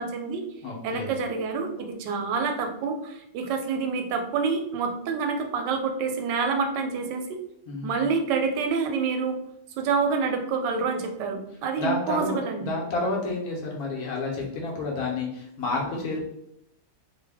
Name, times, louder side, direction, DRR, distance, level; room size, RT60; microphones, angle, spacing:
voice 1, 0.0-0.4 0.8-7.4 7.8-9.4 9.8-12.7, right 5 dB, 90° right, 4 dB, 1.2 m, -27 dB
voice 2, 0.6-1.1 7.7-8.1 11.8-16.2, left 3 dB, 65° left, -2 dB, 1.2 m, -30 dB
3.2 x 2.1 x 3.4 m, 0.77 s
omnidirectional pair, 1.8 m